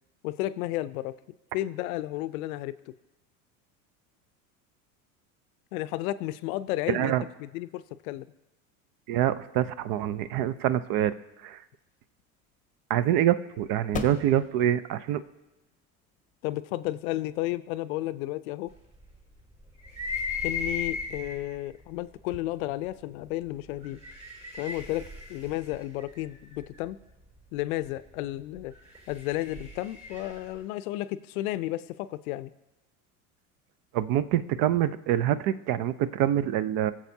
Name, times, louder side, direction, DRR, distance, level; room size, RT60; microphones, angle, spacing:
voice 1, 0.2-1.1 1.5-2.7 5.7-7.1 7.4-8.3 16.4-18.7 20.4-24.0 24.6-27.0 27.5-28.7 29.1-32.5, left 16 dB, 70° left, 16 dB, 0.5 m, -32 dB
voice 2, 6.9-7.2 9.1-11.1 11.4-11.6 12.9-15.2 33.9-36.9, right 11 dB, 50° right, 15 dB, 0.6 m, -25 dB
sound 1, 11.4-18.6, left 5 dB, 20° left, 0.9 m, -44 dB
sound 2, 19.8-21.5 22.3-22.4 23.8-26.6 28.7-30.5, left 4 dB, 15° right, 4.3 m, -36 dB
20.0 x 7.4 x 2.7 m, 0.98 s
hypercardioid pair, 85°, 44 cm